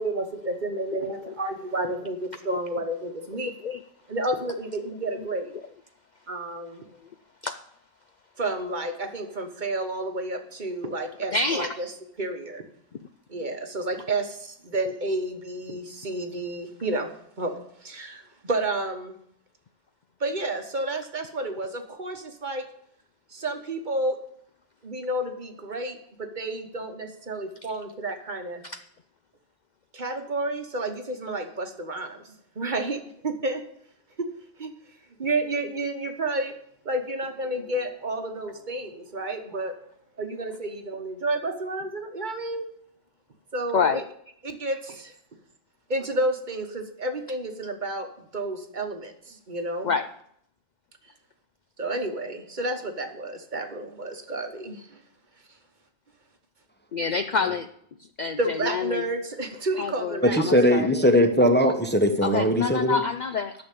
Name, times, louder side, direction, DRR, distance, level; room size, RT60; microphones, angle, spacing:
voice 1, 0.0-3.5 4.1-5.5 6.3-6.9 8.4-11.9 12.2-12.6 13.3-17.1 17.4-19.1 20.2-22.7 23.3-24.2 24.8-28.6 29.9-33.6 34.2-34.3 34.6-34.7 35.2-36.5 36.8-39.8 40.2-42.7 43.5-44.0 44.4-45.1 45.9-49.9 51.8-55.0 58.4-60.7, right 2 dB, 40° right, 6 dB, 1.2 m, -31 dB
voice 2, 0.9-1.3 3.6-3.8 7.4-7.5 10.9-11.0 11.3-11.7 28.6-28.8 43.7-44.0 49.8-50.1 56.9-57.7 58.2-59.0 59.8-61.1 62.2-63.5, left 5 dB, 70° left, 9 dB, 0.4 m, -27 dB
voice 3, 60.2-63.0, equal, 10° left, 5 dB, 0.7 m, -20 dB
10.5 x 6.5 x 8.3 m, 0.68 s
omnidirectional pair, 1.4 m